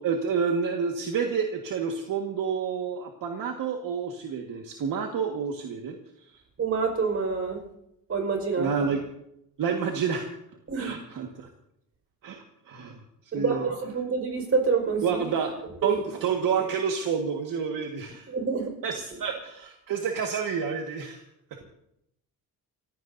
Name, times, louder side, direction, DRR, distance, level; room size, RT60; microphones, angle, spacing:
voice 1, 0.0-6.0 6.3-6.4 8.6-9.0 9.6-10.3 10.8-11.5 12.2-13.7 15.0-15.5 15.8-18.3 18.8-21.2, right 6 dB, 65° right, 2 dB, 1.7 m, -29 dB
voice 2, 6.6-7.6 8.1-8.7 10.7-10.9 13.3-15.2 15.8-15.9 18.3-18.7, right 5 dB, 40° right, 3 dB, 5.1 m, -27 dB
29.0 x 16.0 x 2.7 m, 0.79 s
cardioid pair, 130°, 36 cm